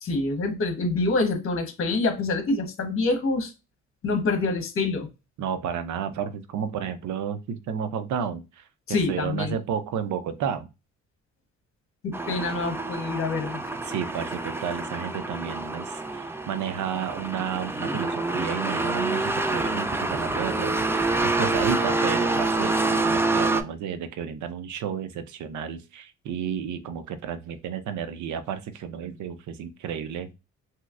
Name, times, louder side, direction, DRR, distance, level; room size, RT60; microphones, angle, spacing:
voice 1, 0.0-3.5 4.0-5.1 8.9-9.5 12.0-13.6, left 3 dB, 45° left, 5 dB, 1.1 m, -26 dB
voice 2, 5.4-10.7 13.8-30.3, right 8 dB, 75° right, 10 dB, 0.7 m, -32 dB
sound 1, 12.1-23.6, right 2 dB, 10° right, 0.4 m, -27 dB
3.1 x 2.9 x 2.5 m, 0.26 s
cardioid pair, 90°, 30 cm